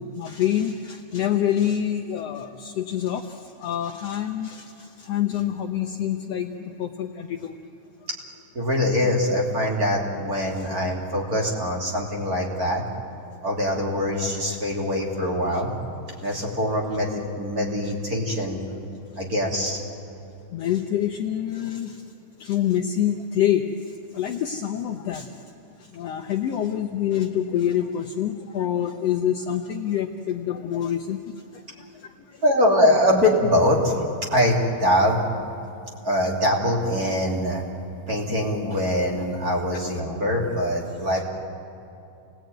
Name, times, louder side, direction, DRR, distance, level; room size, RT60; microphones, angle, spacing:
voice 1, 0.0-7.6 15.5-15.6 16.2-16.4 19.0-19.2 20.5-22.0 22.4-23.7 24.1-25.4 25.8-32.4 39.7-39.8, left 10 dB, 85° left, 4 dB, 1.4 m, -27 dB
voice 2, 8.5-12.8 13.4-15.7 16.2-18.6 19.2-19.8 32.4-33.9 34.3-35.3 36.0-37.6 38.1-41.2, left 1 dB, 25° right, -1 dB, 3.1 m, -23 dB
28.5 x 19.0 x 9.3 m, 2.7 s
omnidirectional pair, 4.0 m